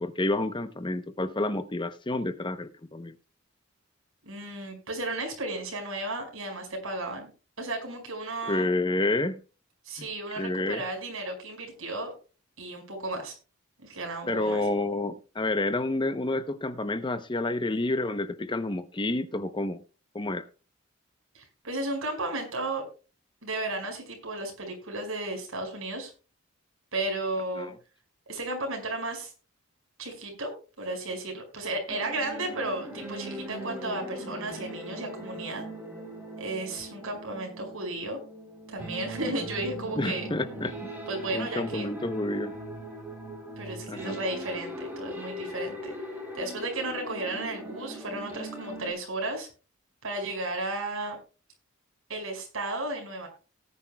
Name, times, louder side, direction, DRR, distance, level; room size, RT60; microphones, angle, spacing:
voice 1, 0.0-3.1 8.4-9.4 10.0-10.1 10.4-10.8 14.3-19.8 20.1-20.4 27.6-27.7 40.0-40.7 41.3-42.5 43.9-44.2, left 2 dB, 20° left, 0.7 m, -29 dB
voice 2, 4.2-7.3 7.6-8.7 9.8-12.1 12.6-13.3 13.8-14.7 21.3-22.8 23.4-26.1 26.9-27.7 28.3-29.3 30.0-30.5 30.8-35.6 36.4-38.2 38.7-40.3 41.1-41.9 43.6-45.9 46.3-49.5 50.0-51.2 52.1-53.3, right 2 dB, 75° right, 5.1 m, -34 dB
sound 1, 31.9-48.9, right 1 dB, 10° right, 3.5 m, -40 dB
18.5 x 9.7 x 2.2 m
head